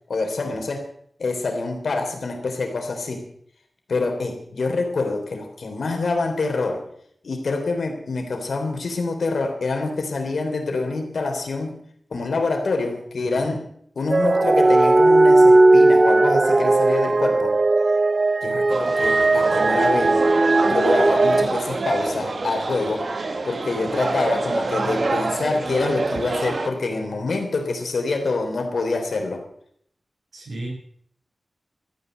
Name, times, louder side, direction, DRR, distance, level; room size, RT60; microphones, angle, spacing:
voice 1, 0.1-0.8 1.2-3.3 3.9-6.8 7.2-11.7 12.1-13.6 13.9-17.6 18.4-20.2 20.6-23.0 23.4-29.4, left 3 dB, 75° left, 4 dB, 3.3 m, -26 dB
voice 2, 13.2-13.6 30.3-30.7, right 2 dB, 85° right, -2 dB, 6.3 m, -35 dB
sound 1, 14.1-21.5, right 2 dB, 40° right, 0.5 m, -17 dB
sound 2, 18.7-26.7, right 3 dB, 55° right, 1.7 m, -27 dB
13.5 x 9.7 x 8.0 m, 0.66 s
wide cardioid pair, 95°, 0 cm